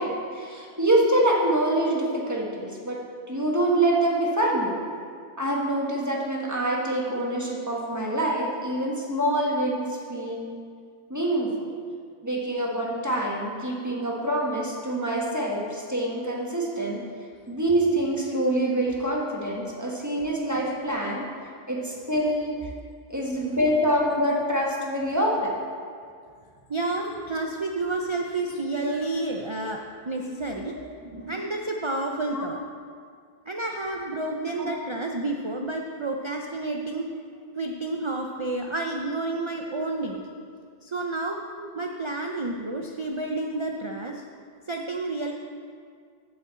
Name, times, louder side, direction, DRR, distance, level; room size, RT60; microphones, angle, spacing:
voice 1, 0.0-3.0 3.3-4.7 5.4-10.5 11.1-11.8 12.2-17.0 17.5-21.3 21.7-22.7 23.1-25.5 28.8-28.9 32.3-32.5 34.6-34.7, right 1 dB, 15° right, -3 dB, 1.2 m, -25 dB
voice 2, 26.7-30.8 31.0-32.6 33.5-37.1 37.6-40.2 40.8-41.4 41.7-44.2 44.7-45.3, right 2 dB, 45° right, 2 dB, 0.4 m, -30 dB
7.5 x 5.6 x 7.5 m, 2.1 s
omnidirectional pair, 1.2 m